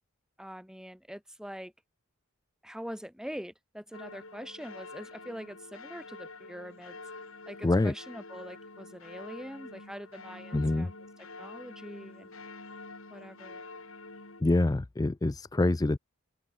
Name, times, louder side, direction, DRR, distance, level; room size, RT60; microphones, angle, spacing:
voice 1, 0.4-1.7 2.6-7.0 7.5-12.3 13.1-13.7, equal, 5° right, 6.3 m, -44 dB
sound 1, 3.9-14.4, left 3 dB, 65° left, 5.7 m, -47 dB
voice 2, 10.5-10.9 14.4-16.0, left 2 dB, 15° left, 0.3 m, -26 dB
open air
head